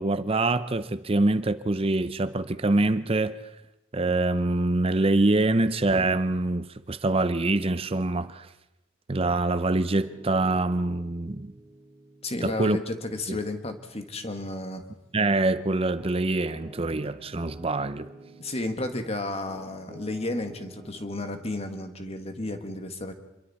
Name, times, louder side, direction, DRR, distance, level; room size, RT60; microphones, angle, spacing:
voice 1, 0.0-3.4 3.9-8.5 9.1-11.5 12.4-12.8 13.3-13.4 15.1-18.1, right 2 dB, 30° right, 0.6 m, -25 dB
Piano, 9.7-19.0 19.5-21.5, right 1 dB, 15° left, 7.0 m, -51 dB
voice 2, 12.2-14.8 18.4-23.1, left 2 dB, 30° left, 1.7 m, -32 dB
27.0 x 22.5 x 4.3 m
head